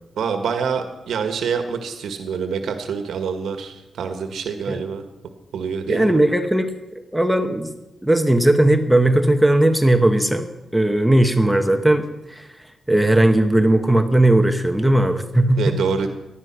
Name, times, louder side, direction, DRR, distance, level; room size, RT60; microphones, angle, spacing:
voice 1, 0.2-5.0 5.5-6.2 15.6-16.1, right 6 dB, 90° right, 6 dB, 1.7 m, -26 dB
voice 2, 5.9-6.7 7.1-7.7 8.0-10.5 10.7-12.4 12.9-15.8, right 1 dB, 5° right, 6 dB, 1.0 m, -17 dB
19.0 x 12.5 x 6.1 m, 1.0 s
wide cardioid pair, 180°, 0 cm